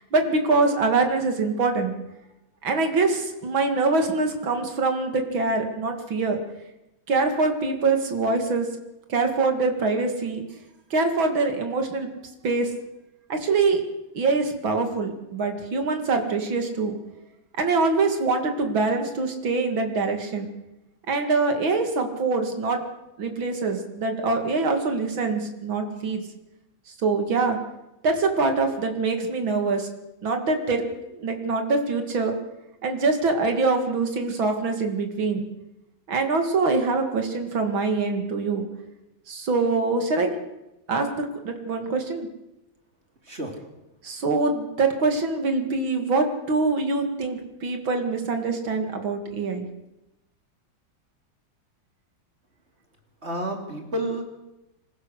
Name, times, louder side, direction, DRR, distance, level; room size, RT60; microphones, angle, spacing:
voice 1, 0.1-1.9 2.6-6.4 7.1-8.7 9.1-10.4 10.9-12.1 12.4-12.7 13.3-13.8 14.1-16.9 17.6-20.5 21.1-22.8 23.2-26.2 27.0-27.6 28.0-29.9 30.2-30.8 31.1-32.3 32.8-35.4 36.1-38.7 39.3-40.4 40.9-42.3 44.0-49.6, right 3 dB, 75° right, 5 dB, 3.2 m, -24 dB
voice 2, 53.2-54.2, right 1 dB, 30° right, 3 dB, 3.3 m, -30 dB
27.0 x 15.0 x 6.6 m, 0.94 s
omnidirectional pair, 2.2 m